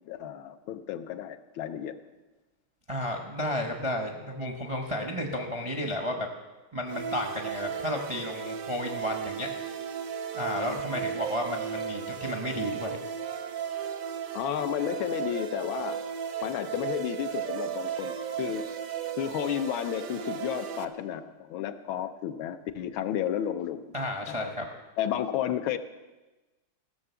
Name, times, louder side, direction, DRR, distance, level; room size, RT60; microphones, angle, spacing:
voice 1, 0.1-2.0 14.3-16.0 16.4-18.7 19.2-23.9 24.3-24.5 25.0-25.8, left 10 dB, 75° left, 10 dB, 1.4 m, -32 dB
voice 2, 2.9-6.3 6.7-9.5 10.3-13.0 23.9-24.6, left 1 dB, 30° right, 2 dB, 0.5 m, -32 dB
sound 1, 6.9-20.8, right 8 dB, 65° right, 0.8 m, -35 dB
16.0 x 6.7 x 6.9 m, 1.1 s
omnidirectional pair, 2.3 m